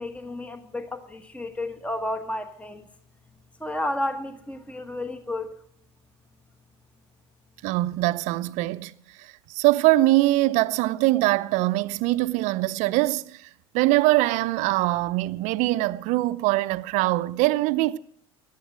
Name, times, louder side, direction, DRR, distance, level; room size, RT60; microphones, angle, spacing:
voice 1, 0.0-2.9 3.6-5.6, left 1 dB, 10° left, 1.3 m, -32 dB
voice 2, 7.6-8.9 9.2-13.5 13.7-18.0, right 18 dB, 55° right, 0.7 m, -23 dB
17.0 x 12.0 x 6.2 m
hypercardioid pair, 75°, 15 cm